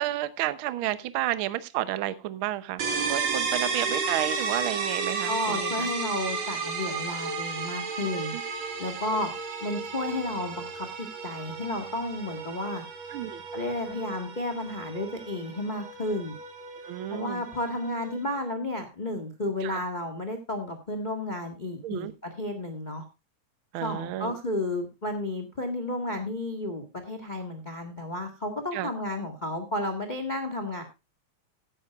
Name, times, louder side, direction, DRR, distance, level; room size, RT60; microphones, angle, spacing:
voice 1, 0.0-2.8 3.1-5.9 8.3-8.4 13.1-13.4 16.8-17.4 19.6-19.8 21.8-22.1 23.7-24.4 28.7-28.9, right 14 dB, 85° right, 13 dB, 1.1 m, -31 dB
sound 1, 2.8-18.4, right 4 dB, 60° right, 3.1 m, -33 dB
voice 2, 5.2-8.3 8.8-9.3 9.6-12.8 13.5-16.3 17.1-23.0 23.8-30.8, left 1 dB, 25° left, 6 dB, 1.1 m, -32 dB
15.5 x 11.0 x 2.4 m, 0.25 s
omnidirectional pair, 3.4 m